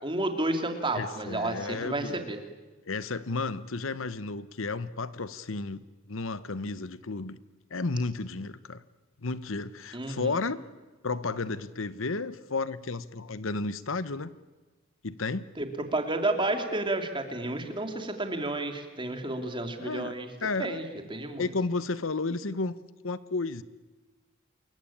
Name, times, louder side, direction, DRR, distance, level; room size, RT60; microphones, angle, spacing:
voice 1, 0.0-2.4 9.9-10.3 15.6-20.3 20.6-21.5, right 2 dB, 25° right, 5 dB, 3.0 m, -31 dB
voice 2, 0.9-2.2 2.9-5.8 6.1-7.4 7.7-8.8 9.2-10.6 11.0-14.3 15.0-15.4 19.8-20.1 20.4-20.8 21.4-22.7 23.0-23.6, left 3 dB, 70° left, 15 dB, 1.0 m, -32 dB
28.0 x 22.5 x 8.8 m, 1.2 s
head